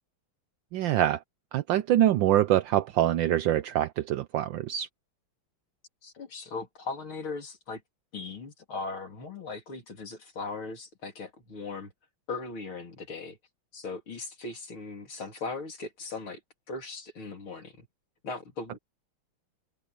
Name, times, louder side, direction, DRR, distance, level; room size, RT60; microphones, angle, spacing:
voice 1, 0.7-1.2 1.5-4.9, right 12 dB, 75° right, 1.3 m, -24 dB
voice 2, 6.0-7.8 8.1-11.9 12.3-13.4 13.7-16.4 16.7-17.9 18.2-18.8, left 3 dB, 75° left, 4.5 m, -38 dB
omnidirectional pair, 2.3 m